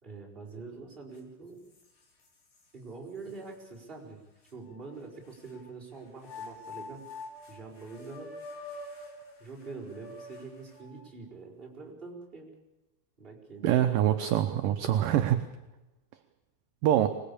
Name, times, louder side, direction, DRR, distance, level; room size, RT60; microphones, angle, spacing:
voice 1, 0.0-1.6 2.7-4.2 4.5-7.0 7.5-8.4 9.4-12.5 13.2-13.8, right 4 dB, 10° right, -3 dB, 4.5 m, -45 dB
sound 1, 1.1-1.2 1.7-2.6 3.3-3.4 4.5-5.6 6.2-11.1, left 2 dB, 65° left, 6.1 m, -46 dB
voice 2, 13.6-15.4 16.8-17.1, right 11 dB, 70° right, 7 dB, 2.2 m, -24 dB
25.0 x 19.5 x 8.6 m, 0.99 s
omnidirectional pair, 5.1 m